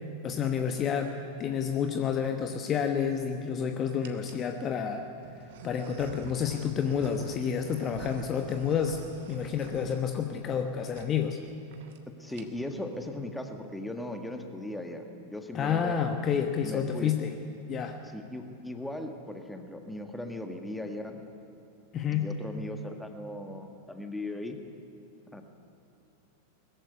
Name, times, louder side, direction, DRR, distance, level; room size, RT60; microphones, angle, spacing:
voice 1, 0.2-5.0 5.6-9.0 9.3-11.4 15.5-17.3 17.7-18.0 21.9-22.3, left 7 dB, 30° left, 6 dB, 1.2 m, -29 dB
sound 1, 1.9-2.3 3.0-3.6 4.0-4.5 5.2-10.6 10.9-11.1 11.4-11.5 11.7-12.0 12.3-12.8, right 4 dB, 55° right, 1.6 m, -46 dB
voice 2, 12.1-16.0 16.6-17.1 18.1-21.2 22.1-24.6 25.3-25.4, left 1 dB, 5° left, 5 dB, 1.8 m, -38 dB
20.5 x 14.5 x 9.7 m, 2.8 s
figure-of-eight pair, 90°, 0 cm